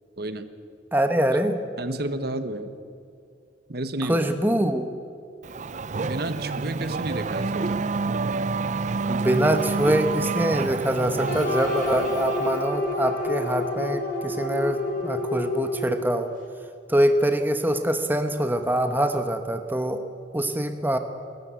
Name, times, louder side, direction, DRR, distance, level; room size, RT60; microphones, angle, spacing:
voice 1, 0.2-0.5 1.8-2.7 3.7-4.3 6.0-7.8, right 1 dB, 55° right, 10 dB, 1.2 m, -31 dB
voice 2, 0.9-1.6 4.0-4.9 9.1-16.3 16.9-20.0 20.3-21.0, right 1 dB, 10° right, 7 dB, 1.0 m, -24 dB
Race car auto racing / Accelerating revving vroom, 5.4-12.7, right 4 dB, 40° right, 0.5 m, -28 dB
sound 1, 11.3-16.2, left 2 dB, 45° left, 4.3 m, -28 dB
28.0 x 13.5 x 8.3 m, 2.4 s
head